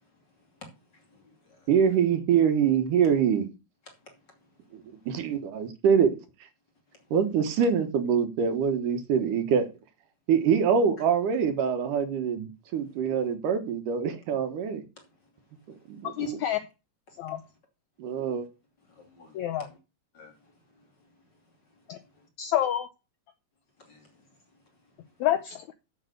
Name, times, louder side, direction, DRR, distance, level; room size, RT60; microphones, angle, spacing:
voice 1, 0.9-1.7 19.0-19.7 20.1-20.3 23.8-24.2, left 3 dB, 35° left, 2.8 m, -55 dB
voice 2, 1.7-3.5 4.7-6.2 7.1-9.7 10.3-14.8 15.9-16.4 18.0-18.5, right 7 dB, 70° right, 2.7 m, -24 dB
voice 3, 16.0-16.6 17.2-17.4 19.3-19.7 21.9-22.0 22.4-22.9 25.2-25.7, left 11 dB, 75° left, 1.7 m, -28 dB
7.7 x 7.4 x 6.5 m
omnidirectional pair, 4.0 m